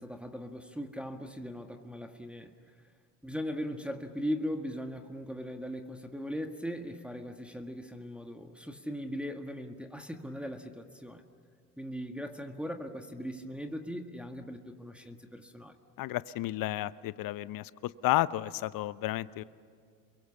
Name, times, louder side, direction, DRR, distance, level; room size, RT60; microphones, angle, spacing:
voice 1, 0.0-2.5 3.2-11.3 11.8-15.8, equal, ahead, 4 dB, 1.8 m, -39 dB
voice 2, 16.0-19.4, left 15 dB, 45° left, 17 dB, 0.8 m, -32 dB
29.0 x 23.0 x 7.2 m, 2.2 s
hypercardioid pair, 80°, 46 cm